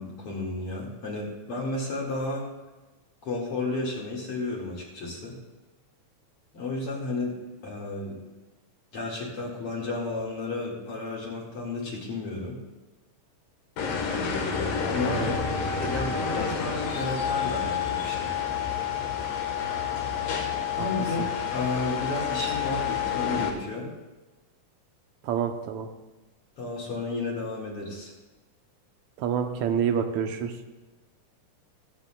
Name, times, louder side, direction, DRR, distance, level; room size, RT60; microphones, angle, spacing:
voice 1, 0.0-2.4 3.2-5.4 6.5-7.4 7.6-8.1 8.9-12.6 14.8-15.5 15.8-18.3 20.7-21.2 21.5-23.9 26.6-28.1, left 2 dB, 50° left, -3 dB, 2.7 m, -32 dB
sound 1, 13.8-23.5, left 7 dB, 85° left, 2.9 m, -29 dB
voice 2, 15.1-15.4 20.8-20.9 21.2-21.3 25.2-25.9 29.2-30.6, right 8 dB, 70° right, 6 dB, 2.0 m, -28 dB
23.5 x 8.0 x 2.3 m, 1.2 s
omnidirectional pair, 3.7 m